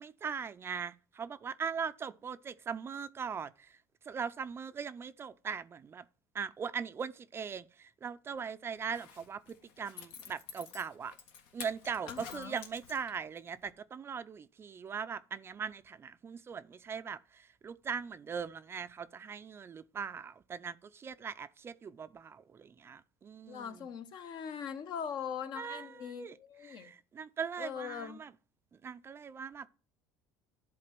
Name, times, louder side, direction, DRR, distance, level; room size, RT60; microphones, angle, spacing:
voice 1, 0.0-3.8 4.0-6.0 6.3-11.1 11.5-23.9 25.5-28.3 28.8-29.7, right 6 dB, 30° right, 0.4 m, -40 dB
Zipper (clothing), 8.8-13.4 13.7-13.8, left 7 dB, 75° left, 1.6 m, -50 dB
voice 2, 12.1-12.6 23.5-26.9 27.6-28.2, left 7 dB, 55° left, 1.1 m, -41 dB
11.0 x 3.9 x 5.9 m
cardioid pair, 120°, 9 cm